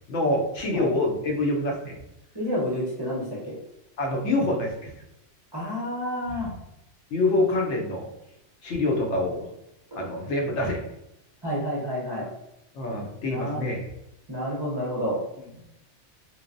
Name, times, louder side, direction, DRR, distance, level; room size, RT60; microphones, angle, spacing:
voice 1, 0.1-2.0 4.0-4.9 7.1-8.1 8.6-9.5 10.0-10.8 12.7-13.9, left 2 dB, 75° left, 0 dB, 0.9 m, -26 dB
voice 2, 2.3-3.6 5.5-6.5 9.9-10.0 11.4-12.3 13.3-13.6 14.3-15.2, equal, 30° right, -7 dB, 0.5 m, -29 dB
3.0 x 2.1 x 2.5 m, 0.85 s
omnidirectional pair, 1.2 m